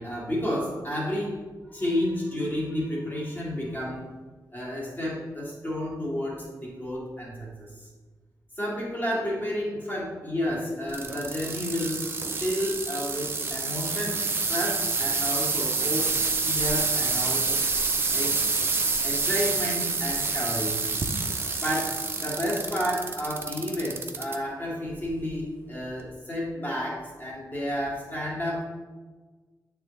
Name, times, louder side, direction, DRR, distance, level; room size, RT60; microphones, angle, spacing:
voice 1, 0.0-1.3 1.7-4.0 4.5-7.9 8.6-12.0 12.4-16.1 16.4-17.6 18.1-18.4 19.0-20.9 21.5-28.6, equal, 25° left, -5 dB, 1.6 m, -31 dB
sound 1, 10.9-24.4 24.9-25.3 26.0-26.1, right 4 dB, 30° right, 0.4 m, -28 dB
8.6 x 3.5 x 3.1 m, 1.4 s
wide cardioid pair, 165°, 7 cm